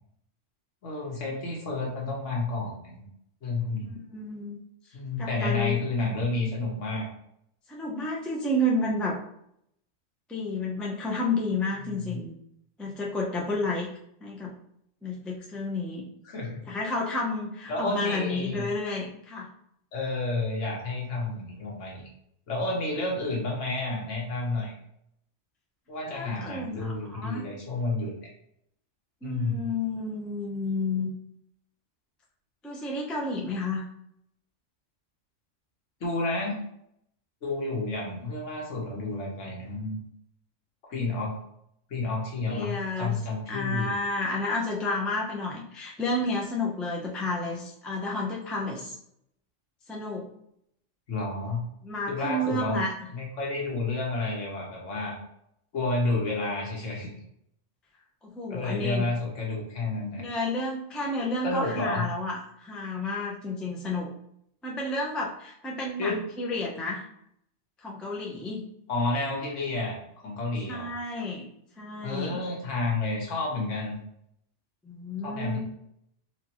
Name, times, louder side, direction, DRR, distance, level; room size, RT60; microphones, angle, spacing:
voice 1, 0.8-3.0 3.4-3.9 4.9-7.1 11.9-12.2 16.3-16.6 17.7-18.7 19.9-22.0 22.5-24.7 25.9-28.3 29.2-29.7 36.0-36.6 37.4-40.0 40.9-41.3 41.9-43.9 51.1-51.6 52.1-52.8 53.1-55.2 55.7-57.2 58.5-60.2 61.4-62.0 66.0-66.2 68.9-70.0 70.2-70.9 72.0-74.0 75.2-75.6, left 2 dB, 75° left, -2 dB, 1.4 m, -30 dB
voice 2, 3.8-4.6 5.2-5.8 7.7-9.2 10.3-12.3 12.8-13.9 14.2-14.6 15.0-16.1 16.7-19.5 26.1-27.4 29.2-31.1 32.6-33.8 42.5-43.2 43.5-49.0 49.9-50.3 51.8-52.9 58.2-59.1 60.2-64.1 64.6-67.1 67.8-68.6 70.7-71.5 71.8-72.4 74.8-75.6, left 2 dB, ahead, -3 dB, 0.3 m, -31 dB
4.3 x 2.6 x 2.9 m, 0.73 s
omnidirectional pair, 1.3 m